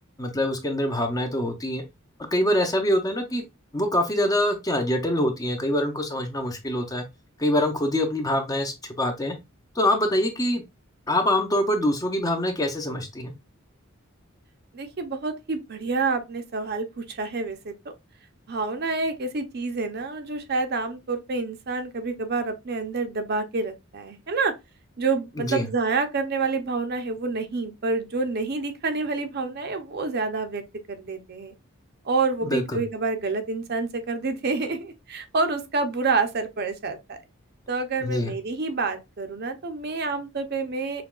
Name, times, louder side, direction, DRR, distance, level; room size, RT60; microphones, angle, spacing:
voice 1, 0.2-1.8 2.3-3.4 3.7-7.0 7.4-9.4 9.8-10.6 11.1-13.3 25.4-25.7 32.4-32.8 38.0-38.3, left 1 dB, 15° left, 0.5 m, -24 dB
voice 2, 14.7-17.7 18.5-24.5 25.0-31.5 32.0-37.2 37.7-41.0, right 3 dB, 50° right, 0.6 m, -28 dB
5.8 x 2.3 x 2.3 m
head